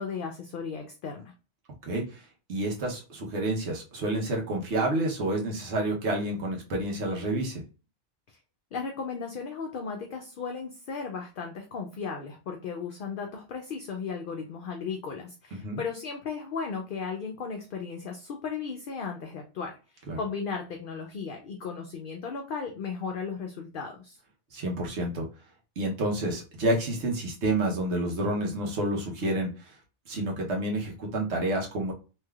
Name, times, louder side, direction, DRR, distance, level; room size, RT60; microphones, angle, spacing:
voice 1, 0.0-1.3 8.3-8.4 8.7-24.2, left 5 dB, 60° left, 3 dB, 0.6 m, -36 dB
voice 2, 1.8-2.2 2.5-7.6 15.5-15.8 20.1-20.2 24.5-25.3 25.8-29.8 30.1-31.9, right 1 dB, 70° right, 0 dB, 1.1 m, -29 dB
3.2 x 2.8 x 2.3 m, 0.33 s
omnidirectional pair, 1.2 m